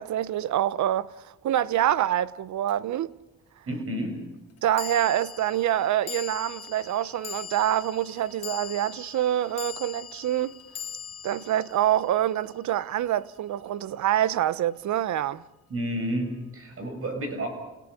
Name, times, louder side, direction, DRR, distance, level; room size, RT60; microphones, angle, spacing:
voice 1, 0.0-3.2 4.6-10.5 11.2-15.4, right 12 dB, 70° right, 0.9 m, -26 dB
sound 1, 2.7-2.8 4.8-13.2, left 9 dB, 50° left, 1.6 m, -41 dB
voice 2, 3.7-4.2 15.7-17.5, right 1 dB, 50° right, 7.2 m, -30 dB
30.0 x 18.0 x 8.4 m
cardioid pair, 90°, 30 cm